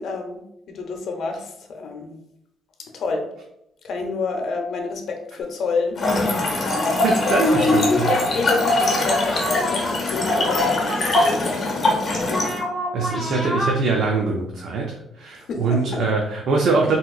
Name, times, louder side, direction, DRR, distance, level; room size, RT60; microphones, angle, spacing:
voice 1, 0.0-2.2 2.9-3.3 3.8-7.7 8.0-12.0 12.3-12.7 15.5-16.0, left 4 dB, 70° left, 3 dB, 0.6 m, -29 dB
sound 1, 5.4-5.5 6.1-8.4 9.1-9.9 10.2-11.4 12.2-13.7, equal, 15° left, 1.2 m, -30 dB
Trickle dribble / Fill (with liquid), 5.9-12.6, left 2 dB, 45° left, 0.9 m, -21 dB
voice 2, 7.0-8.1 12.9-17.0, right 4 dB, 70° right, 0 dB, 0.5 m, -23 dB
3.4 x 2.9 x 2.3 m, 0.79 s
cardioid pair, 90°, 0 cm